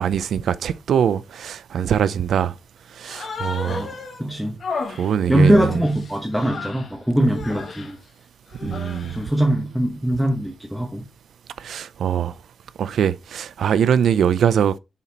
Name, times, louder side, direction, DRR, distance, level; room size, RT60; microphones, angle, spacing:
voice 1, 0.0-2.5 3.0-3.9 5.0-5.7 8.6-9.2 11.6-12.3 12.8-14.8, right 8 dB, 90° right, 0.4 m, -22 dB
Human voice, 3.0-4.2 4.6-6.9 7.3-7.9 8.5-9.3, left 4 dB, 50° left, 1.4 m, -33 dB
voice 2, 4.2-4.6 5.3-8.0 8.6-11.0, right 1 dB, 5° right, 1.1 m, -21 dB
7.1 x 4.2 x 4.0 m
wide cardioid pair, 150°, 0 cm